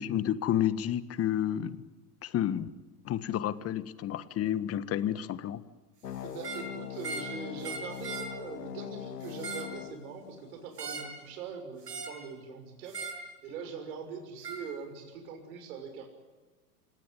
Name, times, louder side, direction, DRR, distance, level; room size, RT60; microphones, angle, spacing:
voice 1, 0.0-1.8 2.2-2.7 3.0-5.6, left 11 dB, 30° left, 15 dB, 1.5 m, -30 dB
sound 1, 6.0-11.0, left 10 dB, 80° left, 1.4 m, -42 dB
voice 2, 6.2-16.1, right 5 dB, 60° right, 6 dB, 6.3 m, -42 dB
sound 2, 6.3-6.7 7.0-7.3 7.6-8.3 9.2-9.7 10.8-11.2 11.8-12.2 12.9-13.2 14.4-14.6, right 4 dB, 85° right, 6.4 m, -39 dB
27.5 x 18.5 x 9.8 m, 1.3 s
hypercardioid pair, 100°, 47 cm